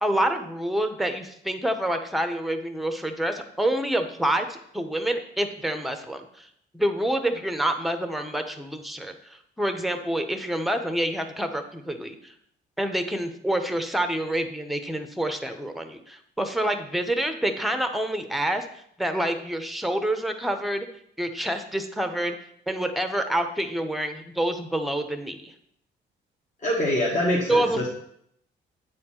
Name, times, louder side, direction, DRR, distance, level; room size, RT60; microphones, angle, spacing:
voice 1, 0.0-6.5 6.7-12.3 12.8-18.7 19.0-20.9 21.2-22.4 22.7-25.5 27.5-27.8, right 1 dB, ahead, 6 dB, 0.8 m, -27 dB
voice 2, 26.6-27.9, left 1 dB, 40° left, -4 dB, 1.6 m, -24 dB
8.6 x 4.3 x 4.3 m, 0.70 s
cardioid pair, 90°, 20 cm